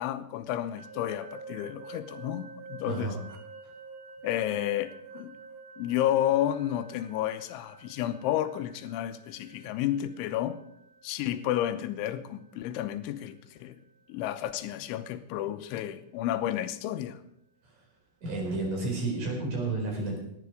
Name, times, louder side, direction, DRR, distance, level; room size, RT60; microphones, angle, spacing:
voice 1, 0.0-3.1 4.2-5.3 5.8-10.6 11.0-13.8 14.1-17.2, left 12 dB, 85° left, 10 dB, 3.3 m, -31 dB
sound 1, 0.8-15.6, right 4 dB, 65° right, 2.5 m, -50 dB
voice 2, 2.9-3.2 18.2-20.2, right 3 dB, 45° right, 0 dB, 5.9 m, -31 dB
18.0 x 11.0 x 4.9 m, 0.77 s
omnidirectional pair, 5.5 m